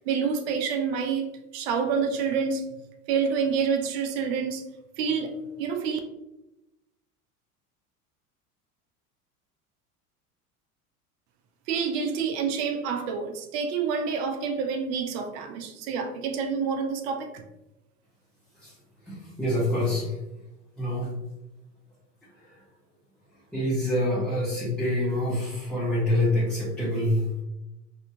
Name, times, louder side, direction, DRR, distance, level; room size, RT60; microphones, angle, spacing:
voice 1, 0.0-2.7 3.1-4.6 5.0-6.0 11.7-17.4, right 6 dB, 45° right, 6 dB, 0.5 m, -28 dB
voice 2, 19.1-20.2 20.8-21.1 22.4-22.6 23.5-27.4, left 1 dB, ahead, -9 dB, 0.9 m, -26 dB
3.6 x 2.6 x 2.4 m, 0.96 s
figure-of-eight pair, 75°, 46 cm